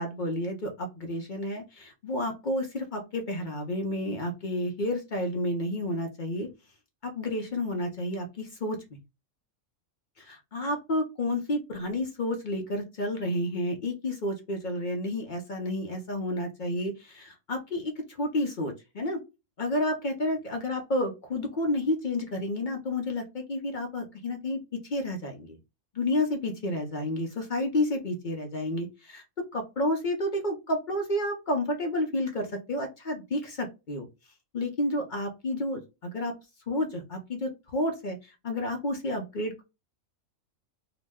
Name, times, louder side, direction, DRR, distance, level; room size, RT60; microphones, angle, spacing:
voice 1, 0.0-6.5 7.0-8.8 10.2-19.2 19.6-25.6 25.9-29.2 29.5-34.1 34.5-36.3 36.7-39.6, left 1 dB, 50° left, 4 dB, 0.6 m, -30 dB
2.9 x 2.1 x 3.4 m, 0.25 s
omnidirectional pair, 1.4 m